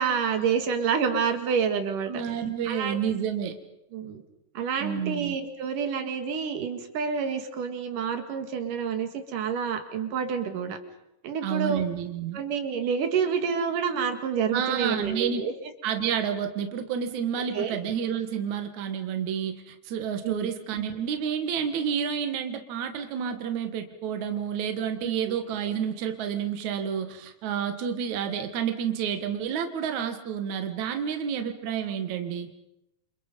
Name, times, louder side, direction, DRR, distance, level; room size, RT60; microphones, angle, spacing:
voice 1, 0.0-2.2 2.7-3.0 3.9-4.2 4.6-10.8 11.2-11.8 12.3-15.5 17.5-17.8 20.2-20.3 25.0-25.3, right 6 dB, 85° right, 7 dB, 3.5 m, -28 dB
voice 2, 2.1-3.5 4.8-5.4 11.4-12.4 14.5-15.4 15.8-32.5, right 8 dB, 65° right, 6 dB, 2.9 m, -30 dB
29.0 x 27.0 x 5.4 m, 0.82 s
omnidirectional pair, 3.6 m